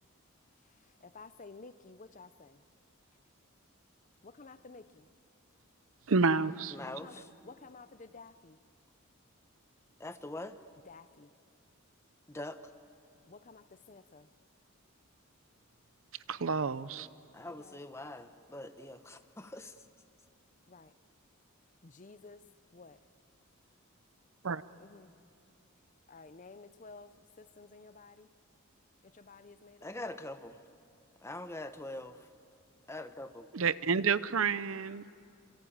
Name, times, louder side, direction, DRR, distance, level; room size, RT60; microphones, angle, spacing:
voice 1, 0.6-2.6 4.2-5.1 6.8-8.6 10.9-11.3 13.3-14.3 17.4-17.8 20.7-20.9 21.8-22.4 22.7-23.0 24.8-25.1 26.1-28.3 29.0-30.1, left 3 dB, 35° left, 13 dB, 0.7 m, -53 dB
voice 2, 6.1-6.8 16.3-17.1 24.4-24.6 33.5-35.2, right 5 dB, 70° right, 16 dB, 0.7 m, -29 dB
voice 3, 6.7-7.3 10.0-10.5 12.3-12.6 17.3-19.7 29.8-30.6 31.2-32.2 32.9-33.5, left 1 dB, 15° left, 9 dB, 1.0 m, -43 dB
27.0 x 24.5 x 8.8 m, 2.4 s
head